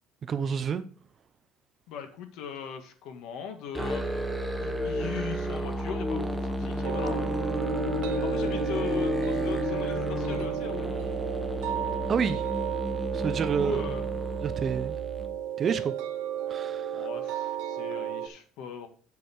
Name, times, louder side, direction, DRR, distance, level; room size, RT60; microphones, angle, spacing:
voice 1, 0.2-0.8 12.1-12.5 13.1-13.8 14.4-15.0 15.6-16.0 16.5-17.1, right 7 dB, 25° right, 0.6 m, -29 dB
voice 2, 1.9-4.1 4.6-7.2 8.2-11.1 13.6-14.1 16.9-18.9, left 7 dB, 65° left, 2.0 m, -39 dB
Musical instrument, 3.7-15.3, equal, ahead, 0.8 m, -32 dB
Bowed string instrument, 6.5-11.1, left 7 dB, 20° left, 0.7 m, -38 dB
sound 1, 6.8-18.3, right 10 dB, 75° right, 1.1 m, -33 dB
8.5 x 7.0 x 4.6 m
cardioid pair, 180°, 0 cm